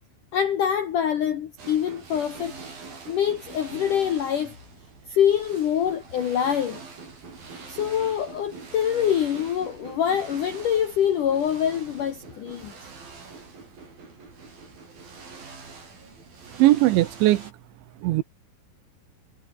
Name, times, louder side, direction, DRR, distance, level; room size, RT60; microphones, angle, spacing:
voice 1, 0.3-2.5 3.1-4.6 5.1-6.8 7.7-12.7, left 9 dB, 70° left, 2.0 m, -25 dB
sound 1, 1.6-17.5, right 4 dB, 45° right, 8.3 m, -44 dB
voice 2, 16.6-17.4 18.0-18.2, right 16 dB, 75° right, 3.0 m, -19 dB
omnidirectional pair, 5.9 m